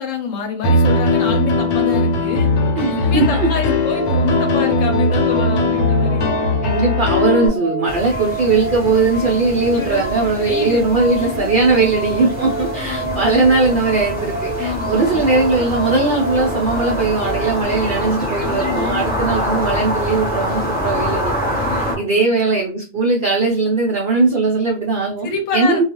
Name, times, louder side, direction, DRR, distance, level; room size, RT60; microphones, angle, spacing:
voice 1, 0.0-2.5 2.8-6.5 9.7-10.0 10.4-10.8 11.2-11.5 12.5-13.2 14.6-15.2 18.4-19.2 21.6-22.0 25.2-25.8, left 5 dB, 65° left, 4 dB, 1.0 m, -27 dB
Piano, 0.6-7.5, left 2 dB, 85° left, 1.1 m, -18 dB
voice 2, 2.8-3.5 6.6-21.6 22.0-25.3 25.5-25.8, right 3 dB, 85° right, 0 dB, 0.4 m, -19 dB
sound 1, 3.9-17.6, right 3 dB, 65° right, 0.8 m, -28 dB
sound 2, 7.9-22.0, equal, 10° left, 0.5 m, -25 dB
2.3 x 2.3 x 2.9 m, 0.35 s
omnidirectional pair, 1.5 m